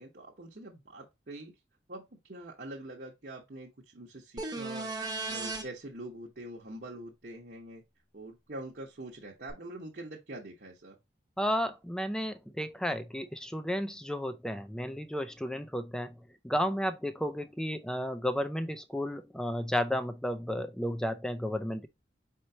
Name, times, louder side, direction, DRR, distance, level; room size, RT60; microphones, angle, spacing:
voice 1, 0.0-1.5 1.9-2.0 2.3-4.9 5.3-7.8 8.1-11.0, right 1 dB, 55° right, 1.0 m, -44 dB
sound 1, 4.4-5.6 9.5-9.6, right 3 dB, 20° right, 0.9 m, -35 dB
voice 2, 11.4-16.2 16.4-21.9, equal, 5° left, 0.4 m, -33 dB
4.5 x 4.3 x 2.7 m
head